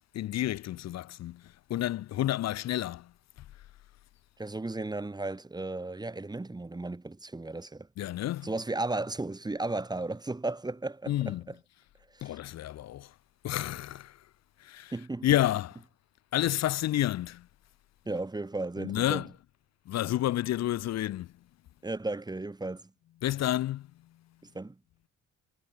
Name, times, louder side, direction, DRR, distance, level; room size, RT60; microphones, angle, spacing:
voice 1, 0.1-3.1 8.0-8.6 11.1-11.4 12.2-13.1 13.4-14.2 14.6-15.8 16.3-17.5 18.8-19.3 19.9-21.3 23.2-23.9, left 13 dB, 50° left, 0.5 m, -30 dB
voice 2, 4.4-7.9 8.4-11.6 12.1-12.4 14.9-15.3 18.1-19.3 21.8-22.9 24.4-24.8, right 2 dB, 10° right, 1.4 m, -35 dB
cardioid pair, 115°, 33 cm